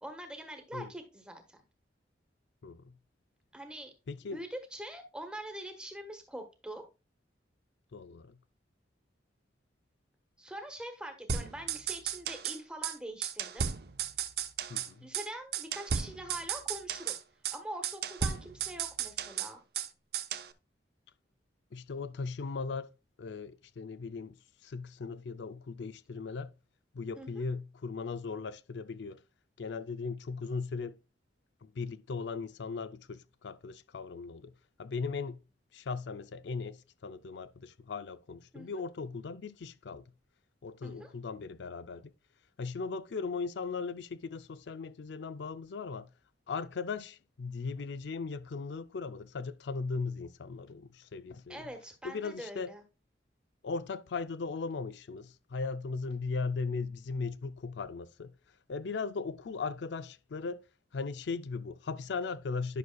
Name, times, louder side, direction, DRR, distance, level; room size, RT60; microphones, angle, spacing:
voice 1, 0.0-1.6 3.5-3.9 4.2-6.8 10.4-13.7 15.0-17.2 17.5-19.6 27.2-27.3 38.5-38.8 40.8-41.1 51.5-52.8, right 1 dB, 5° right, 1.2 m, -44 dB
voice 2, 2.6-2.9 4.1-4.4 7.9-8.4 14.7-15.1 21.7-22.9 23.2-24.4 24.6-26.5 26.9-29.2 29.6-31.0 31.6-34.5 34.8-35.4 35.7-40.0 40.6-42.1 42.6-46.1 46.5-51.6 52.0-52.7 53.6-58.3 58.7-60.6 60.9-62.8, left 4 dB, 75° left, 0.4 m, -38 dB
sound 1, 11.3-12.6 12.8-13.0 13.2-14.9 15.1-15.3 15.5-17.2 17.4-17.6 17.8-19.9 20.1-20.5, right 7 dB, 55° right, 0.6 m, -34 dB
11.0 x 6.3 x 2.3 m
head